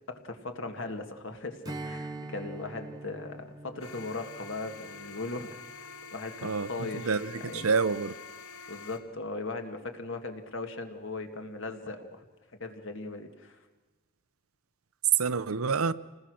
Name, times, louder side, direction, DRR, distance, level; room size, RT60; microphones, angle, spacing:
voice 1, 0.1-5.6 6.1-7.7 8.7-12.3 12.6-13.6, left 3 dB, 60° left, 1.9 m, -38 dB
Strum, 1.6-6.4, right 2 dB, 20° right, 1.1 m, -44 dB
sound 1, 3.8-9.0, left 5 dB, 75° left, 2.2 m, -46 dB
voice 2, 6.4-8.1 15.1-15.9, right 5 dB, 80° right, 0.7 m, -28 dB
28.0 x 19.5 x 6.4 m
head